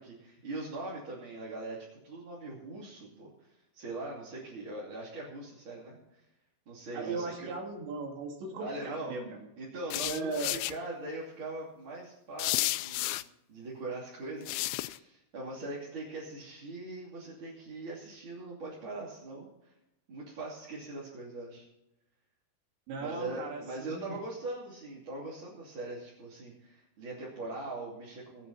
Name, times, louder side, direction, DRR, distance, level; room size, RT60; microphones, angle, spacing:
voice 1, 0.0-1.8 2.0-6.2 6.7-7.5 8.6-9.1 9.6-13.1 13.5-19.7 20.1-21.6 23.0-28.5, right 2 dB, 30° right, -6 dB, 3.0 m, -41 dB
voice 2, 6.9-9.5 10.0-10.5 22.9-24.2, right 3 dB, 85° right, 0 dB, 5.1 m, -37 dB
sound 1, 9.9-10.7 12.4-13.2 14.5-15.0, left 17 dB, 90° left, 2.9 m, -32 dB
24.0 x 8.4 x 4.2 m, 0.87 s
omnidirectional pair, 5.0 m